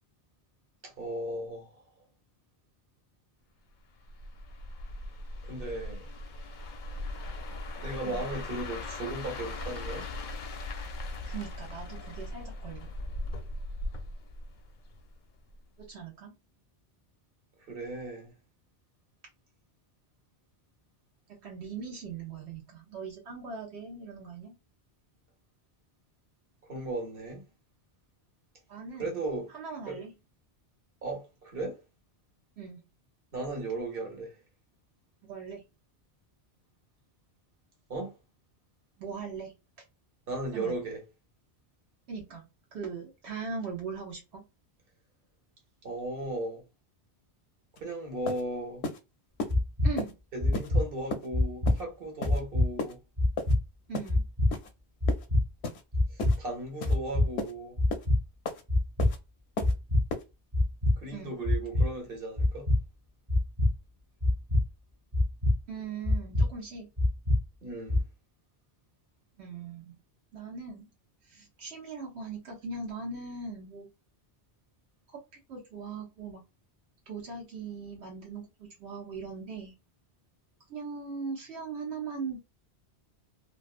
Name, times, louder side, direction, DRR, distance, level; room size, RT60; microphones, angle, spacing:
voice 1, 0.8-1.8 5.4-6.1 7.8-10.1 17.7-18.3 26.6-27.4 29.0-29.5 29.9-30.0 31.0-31.8 33.3-34.4 37.9-38.1 40.3-41.0 45.8-46.6 47.8-48.8 50.3-53.0 56.1-57.8 61.0-62.7 67.6-68.0, right 2 dB, 60° right, 1.2 m, -36 dB
sound 1, 4.0-15.2 15.5-15.8, left 2 dB, 55° left, 0.6 m, -39 dB
voice 2, 11.3-12.9 15.8-16.3 21.3-24.5 28.7-29.2 29.5-30.1 32.6-32.8 35.3-35.6 39.0-39.5 40.5-40.8 42.1-42.4 42.7-44.4 49.8-50.2 53.9-54.2 61.1-61.3 65.7-66.9 69.4-69.9 70.3-70.9 71.3-73.9 75.1-75.2 75.5-76.4 77.1-79.7 80.7-82.4, right 5 dB, 85° right, 1.1 m, -40 dB
sound 2, 47.8-47.9 48.3-48.4 48.8-49.0 49.4-49.5 50.0-50.1 50.5-50.7 51.1-51.3 51.7-51.8 52.2-52.4 52.8-52.9 53.4-53.5 53.9-54.1 54.5-54.7 55.1-55.3 55.6-55.8 56.2-56.4 56.8-57.0 57.4-57.5 57.9-58.1 58.5-58.6 59.0-59.2 59.6-59.7 60.1-60.2, left 2 dB, 85° left, 0.9 m, -34 dB
sound 3, 49.5-49.9 50.4-50.8 51.3-51.7 52.2-52.7 53.2-53.6 54.1-54.5 55.0-55.4 55.9-56.3 56.8-57.3 57.8-58.2 58.7-59.1 59.6-60.0 60.5-60.9 61.4-61.9 62.4-62.8 63.3-63.7 64.2-64.6 65.1-65.5 66.0-66.5 67.0-67.4 67.9-68.0, left 1 dB, 30° right, 0.4 m, -24 dB
2.5 x 2.3 x 2.4 m
omnidirectional pair, 1.1 m